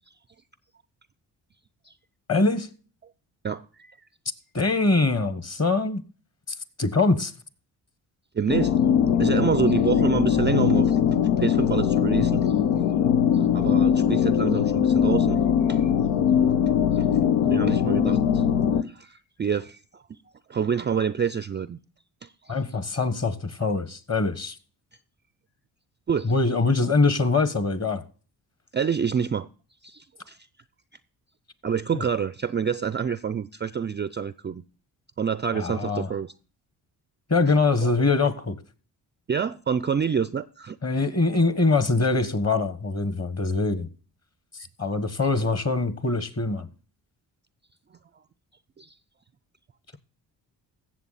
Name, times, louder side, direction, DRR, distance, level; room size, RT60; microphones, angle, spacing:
voice 1, 2.3-2.7 4.5-6.0 6.8-7.3 22.5-24.6 26.2-28.0 31.9-32.0 35.5-36.1 37.3-38.6 40.8-43.9 44.8-46.7, left 3 dB, 35° left, 1.5 m, -23 dB
voice 2, 3.4-4.0 8.3-8.8 9.2-11.0 11.4-12.8 13.3-16.0 16.6-17.1 17.5-18.4 18.7-20.2 20.5-21.8 22.2-22.5 26.1-26.3 28.7-29.5 29.8-30.4 31.6-34.6 35.2-36.3 37.8-37.9 39.3-40.8 45.3-45.5 48.8-48.9, right 7 dB, 25° right, 0.4 m, -28 dB
sound 1, 8.5-18.8, left 8 dB, 90° left, 0.7 m, -21 dB
15.0 x 7.2 x 4.2 m
supercardioid pair, 50°, 47 cm